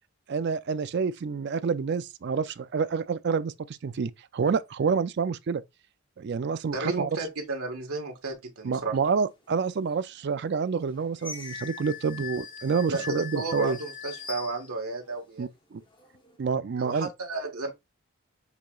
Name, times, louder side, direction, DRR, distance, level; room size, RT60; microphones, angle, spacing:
voice 1, 0.3-5.6 6.2-7.1 8.6-13.8 15.4-15.8 16.4-17.1, right 5 dB, 50° right, 0.3 m, -28 dB
voice 2, 6.7-9.0 12.9-15.5 16.8-17.7, right 3 dB, 75° right, 1.4 m, -32 dB
sound 1, 9.8-9.9 10.5-15.2 15.7-16.4, left 6 dB, 20° left, 0.8 m, -41 dB
6.8 x 3.0 x 2.3 m
head